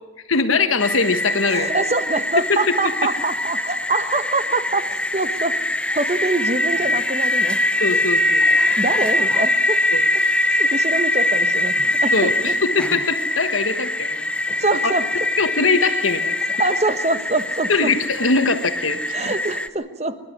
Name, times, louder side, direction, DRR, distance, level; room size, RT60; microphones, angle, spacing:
voice 1, 0.3-1.7 2.5-2.9 7.8-8.4 9.9-10.0 12.1-14.3 14.8-14.9 15.4-16.3 17.7-19.2, left 4 dB, 90° left, 9 dB, 1.5 m, -21 dB
sound 1, 0.8-19.7, left 1 dB, 5° left, 0.7 m, -22 dB
voice 2, 1.5-5.6 5.9-7.6 8.8-9.8 10.6-11.7 12.0-12.5 14.6-15.0 16.6-17.9 19.1-20.2, right 2 dB, 35° right, 10 dB, 1.3 m, -24 dB
25.5 x 12.0 x 9.5 m, 1.2 s
head